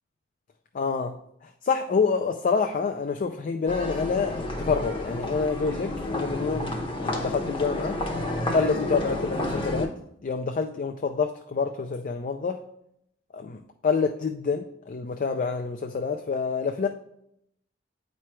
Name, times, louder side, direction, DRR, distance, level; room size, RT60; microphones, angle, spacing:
voice 1, 0.7-1.2 1.6-6.7 7.0-8.0 8.5-9.9 10.2-12.6 13.3-16.9, left 5 dB, 45° left, 5 dB, 0.4 m, -27 dB
sound 1, 3.7-9.9, left 1 dB, 30° left, 0.8 m, -30 dB
8.4 x 3.2 x 4.4 m, 0.74 s
head